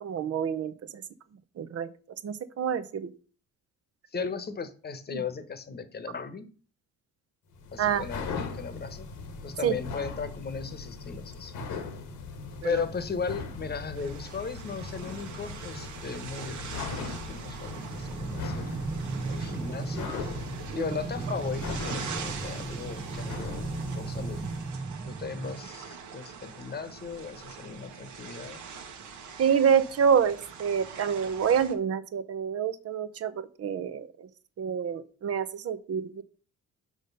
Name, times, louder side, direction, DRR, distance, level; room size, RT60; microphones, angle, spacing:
voice 1, 0.0-1.0 1.6-1.9 2.2-3.1 4.2-4.3 5.1-5.2 7.8-8.0 9.6-9.8 12.6-12.8 20.7-20.9 29.4-34.3 34.6-36.2, right 7 dB, 50° right, 13 dB, 0.8 m, -27 dB
voice 2, 4.1-6.5 7.7-9.1 9.4-11.6 12.6-18.7 19.3-20.1 20.7-23.7 23.9-24.4 25.1-28.6, left 6 dB, 35° left, 11 dB, 1.1 m, -36 dB
sound 1, 7.5-24.7, left 4 dB, 85° left, 1.4 m, -39 dB
sound 2, 13.9-31.8, right 6 dB, 75° right, 1.4 m, -43 dB
sound 3, 17.7-25.7, right 4 dB, 15° right, 0.4 m, -36 dB
6.3 x 5.0 x 5.4 m, 0.39 s
cardioid pair, 90°, 30 cm